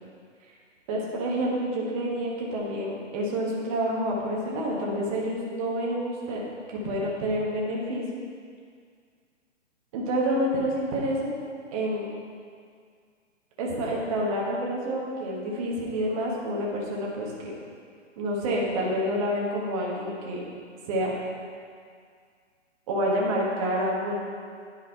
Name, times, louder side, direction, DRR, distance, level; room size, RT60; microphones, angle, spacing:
voice 1, 0.9-6.4 6.7-8.2 9.9-11.4 11.7-12.1 13.6-17.6 18.2-20.4 20.9-21.1 22.9-24.2, equal, 30° right, -3 dB, 1.4 m, -28 dB
11.0 x 3.9 x 4.5 m, 2.1 s
figure-of-eight pair, 135°, 36 cm